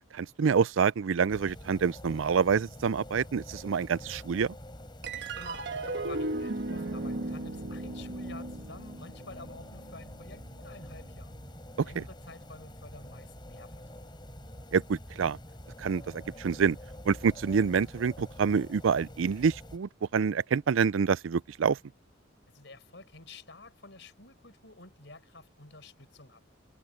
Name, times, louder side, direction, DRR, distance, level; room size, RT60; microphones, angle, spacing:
voice 1, 0.1-4.5 11.8-12.0 14.7-15.4 15.8-16.8 17.1-21.8, right 6 dB, 75° right, 0.4 m, -27 dB
sound 1, 1.3-19.8, left 1 dB, 20° left, 7.4 m, -47 dB
sound 2, 5.0-11.7, right 2 dB, 60° right, 1.4 m, -37 dB
voice 2, 5.1-11.3 11.8-14.1 22.5-26.4, left 3 dB, 60° left, 7.2 m, -50 dB
head